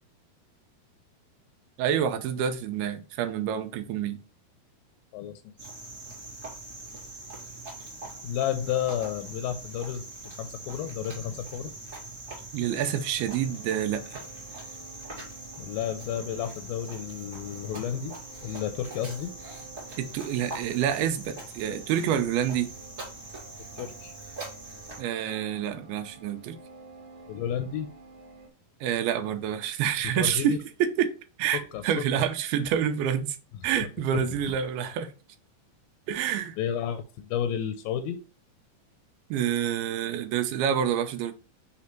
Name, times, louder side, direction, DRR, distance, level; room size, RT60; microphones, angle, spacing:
voice 1, 1.8-4.2 12.5-14.2 20.0-22.7 25.0-26.6 28.8-31.1 31.4-33.4 33.6-35.1 36.1-36.6 39.3-41.3, right 9 dB, 85° right, 2.7 m, -28 dB
voice 2, 5.1-5.5 8.2-10.0 10.4-11.7 15.6-18.1 18.4-19.3 23.8-24.1 27.3-27.9 30.2-30.6 31.5-31.8 36.6-38.2, left 9 dB, 80° left, 2.2 m, -31 dB
Cricket, 5.6-25.0, right 2 dB, 25° right, 1.9 m, -43 dB
sound 1, 12.6-28.5, right 3 dB, 45° right, 2.9 m, -51 dB
6.3 x 3.5 x 4.4 m
omnidirectional pair, 4.3 m